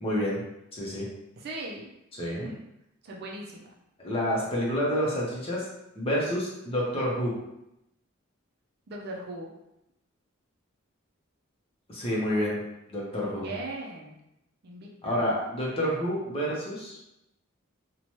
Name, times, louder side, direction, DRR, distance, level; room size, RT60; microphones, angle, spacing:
voice 1, 0.0-0.4 0.7-1.1 2.2-2.5 4.0-5.7 6.0-7.3 11.9-12.6 12.9-13.5 15.0-17.0, equal, 30° left, -5 dB, 0.7 m, -28 dB
voice 2, 1.4-1.9 2.4-2.7 3.0-3.7 8.9-9.5 13.4-14.2 14.6-15.2, right 2 dB, 50° right, -2 dB, 0.5 m, -39 dB
2.7 x 2.2 x 3.0 m, 0.87 s
head